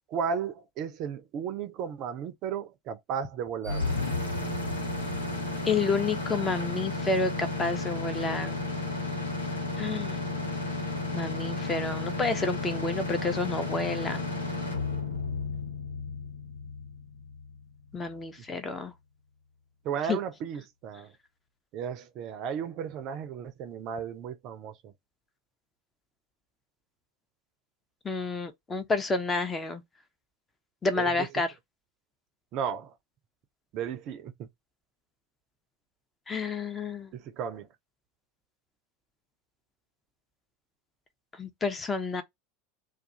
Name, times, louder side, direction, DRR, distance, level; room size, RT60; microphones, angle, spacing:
voice 1, 0.1-3.9 19.8-21.1 21.7-24.9 31.0-31.3 32.5-32.9 33.7-34.5 37.1-37.7, right 7 dB, 45° right, 0.4 m, -34 dB
sound 1, 3.6-17.6, left 3 dB, 85° left, 1.0 m, -33 dB
voice 2, 5.6-8.6 9.8-10.2 11.1-14.2 17.9-18.9 20.1-20.2 28.0-29.8 30.8-31.5 36.3-37.1 41.4-42.2, left 3 dB, 20° left, 0.6 m, -30 dB
2.3 x 2.3 x 2.7 m
figure-of-eight pair, 80°, 0 cm